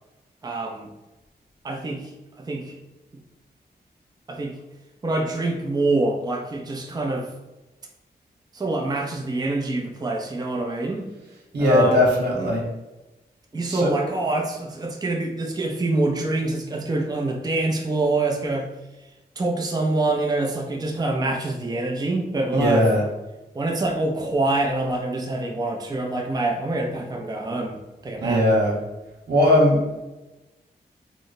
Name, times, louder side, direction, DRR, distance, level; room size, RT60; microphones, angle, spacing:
voice 1, 0.4-0.9 1.6-2.8 4.3-4.5 5.0-7.3 8.5-11.1 11.6-12.1 12.4-12.6 13.5-18.7 19.4-22.9 23.5-28.4, right 2 dB, 25° right, 1 dB, 0.4 m, -25 dB
voice 2, 11.5-12.6 13.7-13.9 22.5-23.1 28.2-28.7 29.3-30.0, left 1 dB, 80° right, -3 dB, 1.0 m, -19 dB
3.1 x 2.1 x 4.0 m, 1.1 s
cardioid pair, 65°, 17 cm